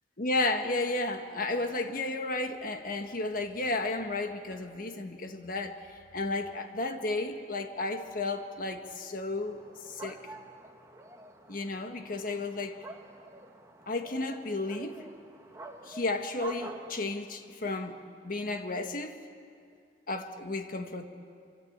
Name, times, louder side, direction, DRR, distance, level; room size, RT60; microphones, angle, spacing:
voice 1, 0.2-5.8 6.1-9.6 9.9-10.3 11.5-12.8 13.9-15.0 15.8-18.0 18.2-19.2 20.1-21.0, left 2 dB, 55° left, 1.6 m, -33 dB
sound 1, 9.4-17.0, right 2 dB, 15° right, 1.5 m, -48 dB
25.5 x 24.5 x 8.7 m
head